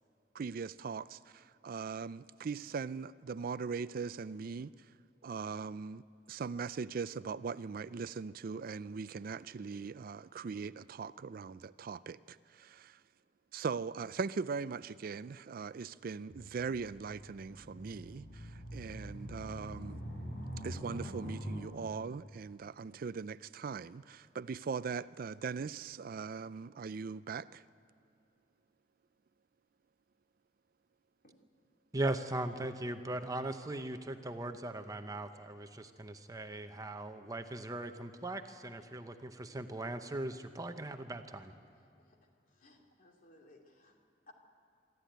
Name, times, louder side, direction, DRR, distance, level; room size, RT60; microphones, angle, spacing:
voice 1, 0.3-4.7 5.2-6.0 6.3-13.0 13.5-20.0 20.6-27.6, right 5 dB, 55° right, 0.4 m, -40 dB
sound 1, 16.3-21.6, equal, 80° left, 5.4 m, -44 dB
voice 2, 31.9-41.5, right 2 dB, 20° right, 0.8 m, -39 dB
voice 3, 42.5-44.0 44.3-44.4, left 2 dB, 50° left, 2.9 m, -61 dB
24.5 x 13.5 x 9.2 m
head